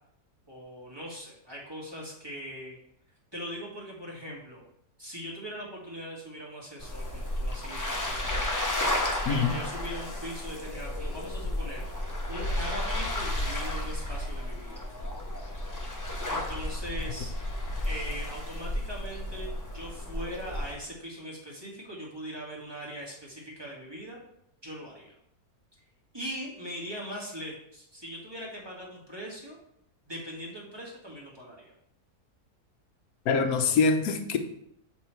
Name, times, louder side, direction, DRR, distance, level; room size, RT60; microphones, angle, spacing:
voice 1, 0.5-2.8 3.3-4.7 5.0-11.8 12.3-14.9 16.3-17.3 17.8-24.2 24.6-25.1 26.1-29.6 30.1-31.7, equal, 15° right, -5 dB, 1.9 m, -41 dB
sound 1, 6.8-20.7, left 1 dB, 20° left, 0.5 m, -33 dB
voice 2, 33.3-34.4, left 5 dB, 70° left, 6 dB, 1.2 m, -24 dB
7.4 x 3.7 x 4.5 m, 0.74 s
omnidirectional pair, 1.6 m